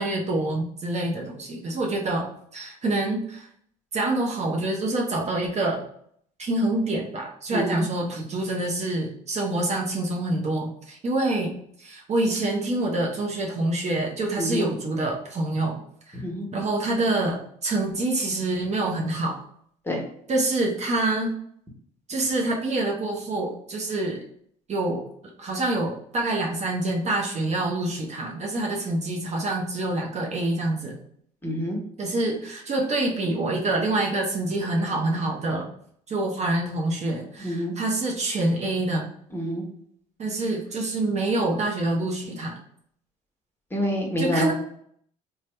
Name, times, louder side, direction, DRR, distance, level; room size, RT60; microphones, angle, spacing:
voice 1, 0.0-3.5 3.9-5.8 6.4-11.5 11.8-15.7 16.1-16.2 16.5-19.4 20.3-21.3 22.1-24.2 24.7-25.0 25.4-31.0 32.0-35.7 36.1-39.1 40.2-42.5 44.2-44.5, right 2 dB, 40° right, 0 dB, 0.8 m, -26 dB
voice 2, 7.5-7.8 14.4-14.7 16.2-16.5 19.8-20.0 31.4-31.8 37.4-37.7 39.3-39.6 43.7-44.5, equal, 10° left, -1 dB, 1.2 m, -27 dB
2.8 x 2.3 x 3.2 m, 0.65 s
hypercardioid pair, 65°, 17 cm